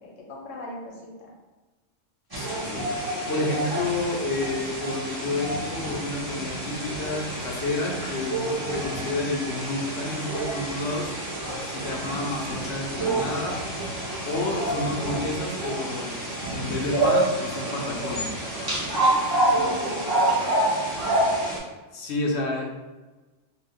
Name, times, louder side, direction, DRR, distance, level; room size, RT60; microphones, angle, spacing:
voice 1, 0.0-1.3 3.3-3.7 19.0-20.0 20.2-21.6, left 2 dB, 90° left, -2 dB, 1.2 m, -40 dB
voice 2, 2.3-2.9 3.3-11.1 11.6-13.6 14.3-16.2 16.5-18.3 21.9-22.6, left 2 dB, 65° left, 0 dB, 0.8 m, -30 dB
sound 1, 2.3-21.6, right 1 dB, 20° right, 0.8 m, -28 dB
sound 2, 3.4-12.7, right 1 dB, 50° right, 1.0 m, -47 dB
2.8 x 2.4 x 3.6 m, 1.2 s
omnidirectional pair, 1.3 m